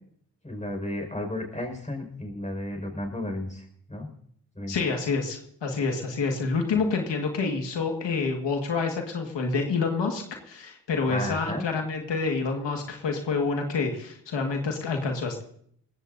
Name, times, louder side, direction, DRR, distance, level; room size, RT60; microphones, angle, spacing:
voice 1, 0.4-3.6 3.9-4.1 4.6-4.8 11.1-11.6, left 1 dB, 15° left, 3 dB, 5.3 m, -33 dB
voice 2, 4.7-15.4, left 4 dB, 85° left, 3 dB, 1.9 m, -28 dB
20.0 x 16.0 x 2.7 m, 0.64 s
cardioid pair, 65°, 42 cm